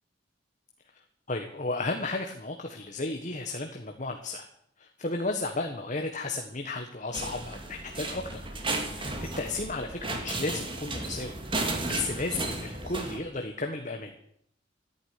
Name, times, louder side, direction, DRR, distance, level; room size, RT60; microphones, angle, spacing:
voice 1, 1.3-4.5 4.8-8.4 8.8-11.3 11.6-14.1, left 2 dB, 40° left, 4 dB, 1.5 m, -34 dB
sound 1, 7.1-13.2, right 2 dB, 30° right, 2.4 m, -34 dB
14.5 x 10.0 x 9.8 m, 0.71 s
head